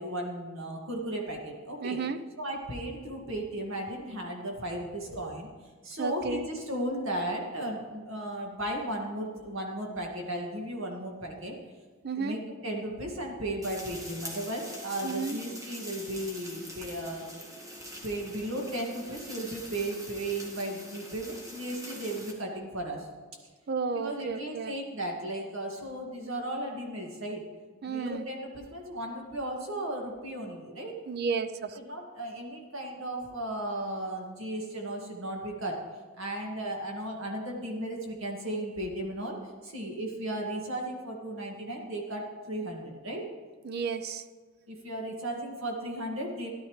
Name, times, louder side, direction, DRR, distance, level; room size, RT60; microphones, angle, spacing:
voice 1, 0.0-2.0 2.4-5.5 5.8-11.5 12.2-17.2 18.0-23.1 23.9-27.4 27.9-30.9 31.8-35.8 36.2-39.4 39.6-43.2 44.7-46.5, right 1 dB, 70° right, 0 dB, 2.1 m, -35 dB
voice 2, 1.8-2.2 6.0-6.5 12.0-12.4 15.0-15.4 23.7-24.7 27.8-28.3 31.1-31.8 43.6-44.3, right 5 dB, 50° right, 12 dB, 0.5 m, -32 dB
sound 1, 13.6-22.3, equal, 15° right, 1.6 m, -44 dB
14.0 x 11.0 x 3.2 m, 1.4 s
head